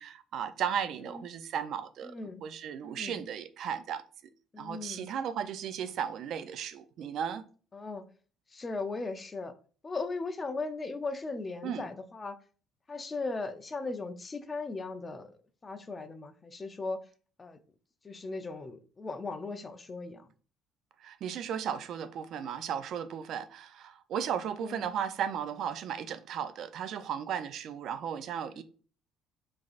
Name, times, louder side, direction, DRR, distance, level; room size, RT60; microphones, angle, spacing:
voice 1, 0.0-2.2 2.4-4.0 4.6-7.4 11.6-11.9 21.0-28.6, right 8 dB, 65° right, 0.3 m, -35 dB
voice 2, 2.1-2.4 2.8-3.2 4.5-5.1 7.7-8.0 8.5-9.5 9.8-12.4 12.9-17.0 17.4-17.6 18.0-20.3 24.6-24.9 28.5-28.6, left 3 dB, 25° left, 0.5 m, -38 dB
3.6 x 3.2 x 2.4 m
supercardioid pair, 90°, 0 cm